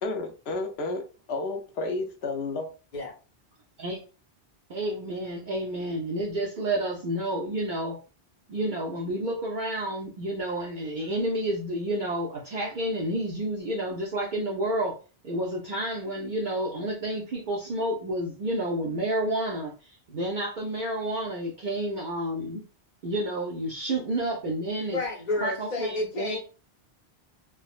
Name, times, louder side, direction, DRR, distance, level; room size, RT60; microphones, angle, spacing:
voice 1, 0.0-2.7, left 3 dB, 80° left, 4 dB, 0.9 m, -31 dB
voice 2, 4.7-8.0 8.5-15.0 15.2-22.6 23.0-25.0 25.4-26.4, right 1 dB, 55° right, -2 dB, 0.6 m, -30 dB
voice 3, 24.9-26.4, left 2 dB, 45° left, 0 dB, 0.9 m, -30 dB
3.6 x 2.0 x 2.4 m, 0.35 s
omnidirectional pair, 1.1 m